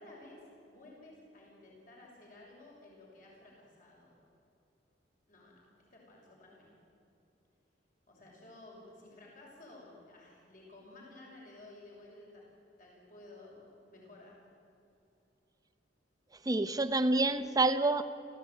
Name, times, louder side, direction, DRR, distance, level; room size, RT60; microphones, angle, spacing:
voice 1, 0.0-4.2 5.3-5.6 5.9-6.7 8.1-12.5 12.8-14.4, left 2 dB, 50° left, -2 dB, 6.3 m, -54 dB
voice 2, 16.4-18.0, right 2 dB, 20° right, 9 dB, 1.0 m, -27 dB
29.5 x 15.0 x 9.4 m, 2.7 s
head